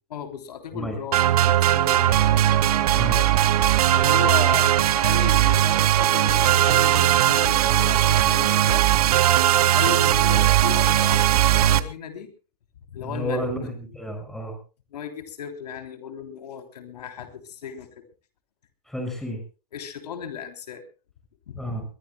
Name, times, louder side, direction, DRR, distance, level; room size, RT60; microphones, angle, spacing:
voice 1, 0.1-2.4 3.9-8.8 9.7-12.3 12.9-13.5 14.9-18.0 19.7-20.8 21.5-21.6, left 8 dB, 85° left, 6 dB, 3.3 m, -35 dB
sound 1, 1.1-11.8, right 12 dB, 70° right, 1.4 m, -19 dB
voice 2, 13.0-14.5 18.9-19.4 21.6-21.8, equal, ahead, 3 dB, 6.5 m, -30 dB
22.5 x 22.0 x 2.2 m, 0.35 s
supercardioid pair, 150°, 20 cm